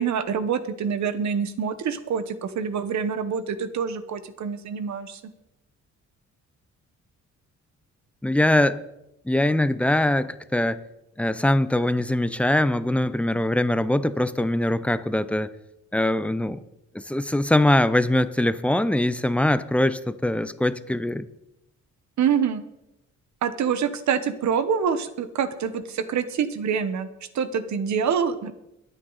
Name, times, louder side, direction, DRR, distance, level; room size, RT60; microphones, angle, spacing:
voice 1, 0.0-5.2 22.2-22.6 23.4-27.1 27.3-28.5, right 7 dB, 65° right, 12 dB, 1.1 m, -26 dB
voice 2, 8.2-8.8 9.3-10.8 11.2-15.5 15.9-16.6 16.9-21.3, left 1 dB, 5° left, 14 dB, 0.5 m, -22 dB
23.0 x 9.2 x 4.0 m, 0.88 s
wide cardioid pair, 155°, 30 cm